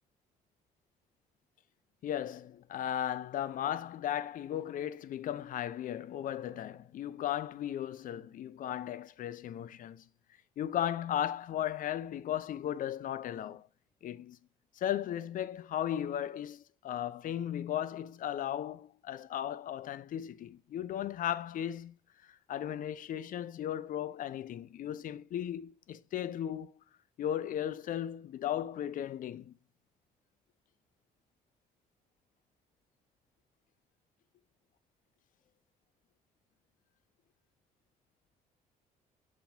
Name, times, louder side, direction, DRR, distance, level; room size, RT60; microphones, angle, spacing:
voice 1, 2.0-10.0 10.6-13.7 14.0-14.4 14.7-22.0 22.2-26.7 27.2-29.5, left 10 dB, 55° left, 0.4 m, -36 dB
6.8 x 2.9 x 2.6 m
supercardioid pair, 70°, 17 cm